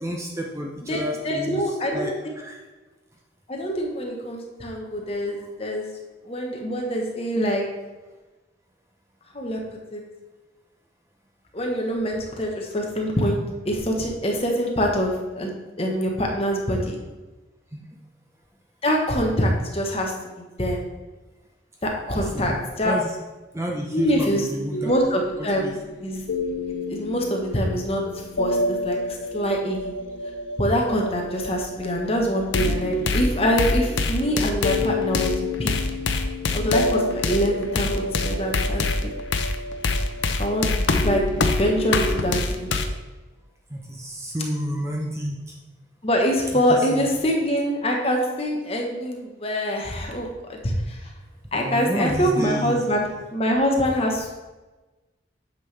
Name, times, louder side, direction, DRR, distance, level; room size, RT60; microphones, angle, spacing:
voice 1, 0.0-2.6 17.7-17.8 22.1-23.1 23.5-24.9 25.6-25.7 43.7-45.5 46.9-47.1 51.5-52.8, equal, 15° right, 0 dB, 0.7 m, -30 dB
voice 2, 0.9-2.4 3.5-5.9 6.2-7.6 9.3-9.6 9.9-10.0 11.5-13.4 13.6-15.5 15.8-17.0 18.8-20.1 20.4-20.8 21.8-23.0 23.9-24.5 24.8-25.7 26.0-26.2 26.9-28.0 28.4-29.9 30.6-35.3 35.6-35.7 36.5-39.1 40.4-42.7 46.0-51.1 51.5-54.3, equal, 30° left, 0 dB, 1.2 m, -24 dB
sound 1, 24.7-42.9, left 2 dB, 80° left, 0.6 m, -26 dB
8.8 x 5.7 x 3.3 m, 1.2 s
head